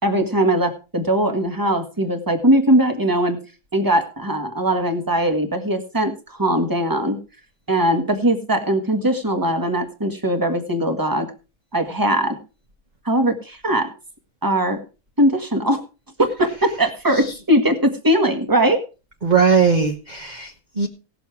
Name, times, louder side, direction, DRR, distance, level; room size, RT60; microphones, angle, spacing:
voice 1, 0.0-3.4 3.7-7.2 7.7-11.3 11.7-12.4 13.0-13.9 14.4-14.8 15.2-15.8 16.4-18.8, right 1 dB, 15° right, 6 dB, 1.7 m, -20 dB
voice 2, 19.2-20.9, right 5 dB, 30° right, 3 dB, 1.3 m, -19 dB
17.5 x 6.9 x 4.7 m, 0.33 s
omnidirectional pair, 1.6 m